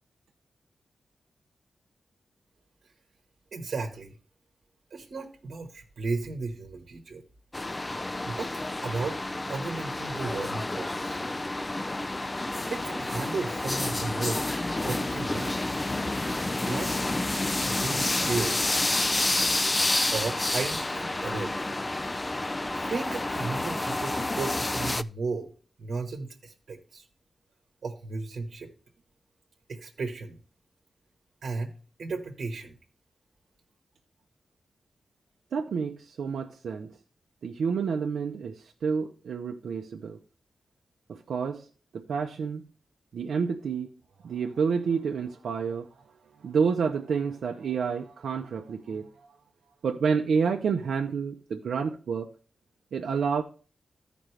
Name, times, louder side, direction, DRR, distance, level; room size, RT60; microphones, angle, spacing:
voice 1, 3.5-4.2 4.9-7.2 8.2-8.5 8.8-9.2 9.5-11.2 12.2-12.3 12.7-14.4 14.8-15.8 16.7-16.9 17.6-18.7 20.1-21.7 22.8-25.5 25.8-27.1 27.8-28.7 29.7-30.4 31.4-31.7 32.0-32.8, right 4 dB, 70° right, 1.2 m, -34 dB
sound 1, 7.5-25.0, left 2 dB, 25° left, 0.4 m, -29 dB
voice 2, 35.5-36.9 37.4-38.5 38.8-40.2 41.1-41.6 41.9-42.6 43.1-43.9 44.2-45.9 46.4-49.1 49.8-52.3 52.9-53.4, right 6 dB, 85° right, 0.7 m, -29 dB
14.0 x 5.1 x 3.3 m
cardioid pair, 80°, 0 cm